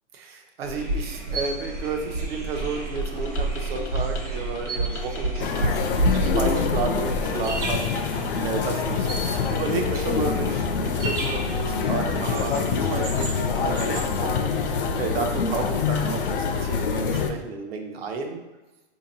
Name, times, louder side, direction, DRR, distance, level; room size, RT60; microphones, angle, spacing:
voice 1, 0.1-18.4, right 4 dB, 55° right, 3 dB, 0.7 m, -32 dB
sound 1, 0.6-14.1, right 2 dB, 85° right, 1.1 m, -31 dB
sound 2, 2.6-16.6, left 4 dB, 80° left, 0.9 m, -42 dB
sound 3, 5.4-17.3, left 5 dB, 50° left, 0.4 m, -25 dB
4.1 x 2.8 x 2.7 m, 1.1 s
hypercardioid pair, 150°, 36 cm